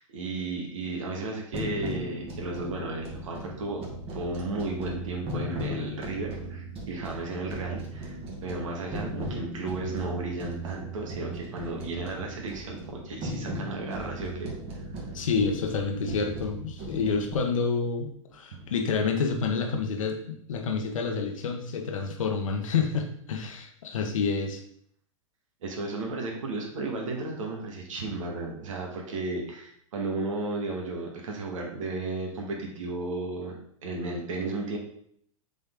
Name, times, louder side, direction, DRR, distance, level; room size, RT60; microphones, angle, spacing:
voice 1, 0.0-3.8 4.1-14.5 18.5-18.7 25.6-33.6 33.8-34.8, right 2 dB, 75° right, 0 dB, 1.8 m, -34 dB
sound 1, 1.5-17.3, right 1 dB, 35° right, 1.8 m, -37 dB
voice 2, 15.1-24.6, left 5 dB, 75° left, 3 dB, 1.2 m, -28 dB
7.3 x 4.2 x 3.8 m, 0.66 s
hypercardioid pair, 110°, 17 cm